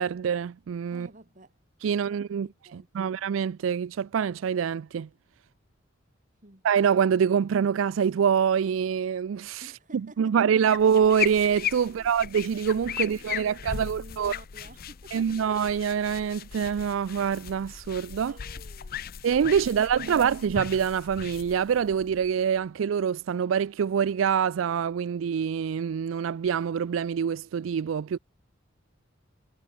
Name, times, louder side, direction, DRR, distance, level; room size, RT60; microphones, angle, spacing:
voice 1, 0.0-1.1 1.8-2.5 3.0-5.1 6.6-9.6 10.2-14.3 15.1-18.3 19.2-28.2, right 7 dB, 80° right, 0.4 m, -25 dB
voice 2, 0.9-1.6 2.0-3.1 6.4-6.7 9.6-10.7 11.8-12.1 12.9-15.4 18.3-19.1 19.5-20.3, right 2 dB, 40° right, 4.0 m, -53 dB
sound 1, 10.6-22.6, left 9 dB, 50° left, 0.6 m, -37 dB
head